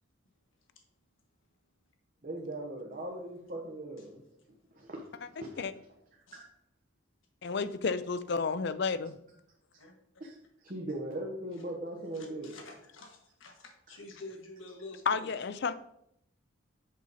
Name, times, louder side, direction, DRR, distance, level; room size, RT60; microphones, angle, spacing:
voice 1, 2.2-4.2 4.7-5.7 6.3-6.4 10.2-10.3 10.6-12.5, right 1 dB, 40° right, -1 dB, 1.1 m, -39 dB
voice 2, 7.4-9.1 15.1-15.7, left 5 dB, 55° left, 12 dB, 0.4 m, -31 dB
voice 3, 12.1-15.7, left 2 dB, 75° left, 3 dB, 1.3 m, -49 dB
7.5 x 5.5 x 4.1 m, 0.76 s
head